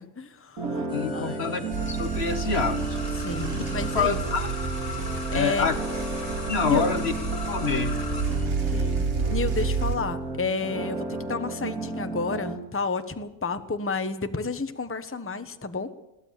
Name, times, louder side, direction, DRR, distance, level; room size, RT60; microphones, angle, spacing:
voice 1, 0.0-0.8 1.1-1.4 3.2-4.2 5.0-5.7 6.7-7.0 8.6-9.0 9.3-15.9, left 4 dB, 10° left, 9 dB, 1.0 m, -31 dB
sound 1, 0.6-12.6, right 2 dB, 85° right, 3.2 m, -33 dB
voice 2, 0.9-3.7 3.9-4.5 5.3-5.7 6.5-7.1 7.5-8.0, left 5 dB, 50° left, 11 dB, 1.2 m, -27 dB
sound 2, 0.9-9.8, left 4 dB, 25° left, 2.2 m, -40 dB
sound 3, 1.7-10.0, right 5 dB, 45° right, 1.7 m, -30 dB
21.5 x 17.0 x 7.4 m, 0.89 s
omnidirectional pair, 1.5 m